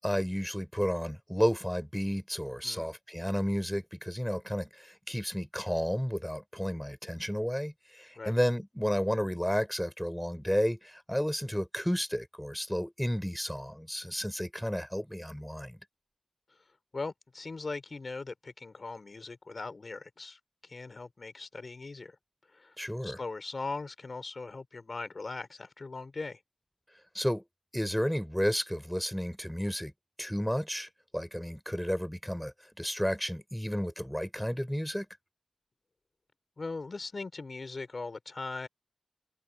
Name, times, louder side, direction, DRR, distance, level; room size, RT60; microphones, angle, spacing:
voice 1, 0.0-15.8 22.8-23.2 27.1-27.4 27.7-29.9 30.2-35.1, equal, 5° left, 4.0 m, -32 dB
voice 2, 16.9-22.2 22.5-22.7 23.0-26.4 36.6-38.7, left 3 dB, 55° left, 4.6 m, -40 dB
cardioid pair, 40°, 0 cm